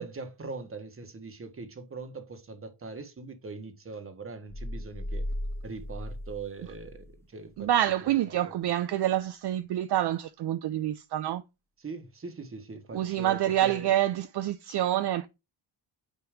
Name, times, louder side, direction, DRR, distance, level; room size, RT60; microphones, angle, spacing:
voice 1, 0.0-5.3 5.6-7.7 8.0-8.6 11.8-14.0, right 4 dB, 25° right, 1.4 m, -41 dB
sound 1, 4.5-7.2, left 1 dB, 5° left, 0.3 m, -36 dB
voice 2, 7.6-11.4 12.9-15.3, right 12 dB, 55° right, 0.6 m, -27 dB
9.1 x 3.0 x 5.0 m
cardioid pair, 115°, 48 cm